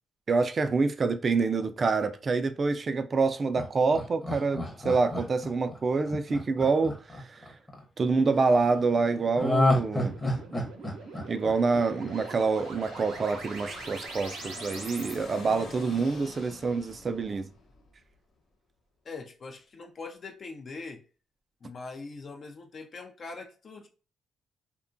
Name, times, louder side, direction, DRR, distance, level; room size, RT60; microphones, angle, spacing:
voice 1, 0.3-7.4 8.0-10.2 11.3-17.5, right 4 dB, 40° right, 0.3 m, -26 dB
Laughter, 3.6-7.8 9.4-12.4 12.7-12.8, left 1 dB, 20° left, 0.8 m, -29 dB
sound 1, 8.1-15.1, right 5 dB, 85° right, 0.6 m, -44 dB
Aircraft, 9.3-9.9 10.6-18.1, left 3 dB, 80° left, 0.8 m, -47 dB
voice 2, 19.0-21.0 21.6-23.9, left 3 dB, 45° left, 0.4 m, -42 dB
2.8 x 2.2 x 2.5 m
cardioid pair, 90°, 0 cm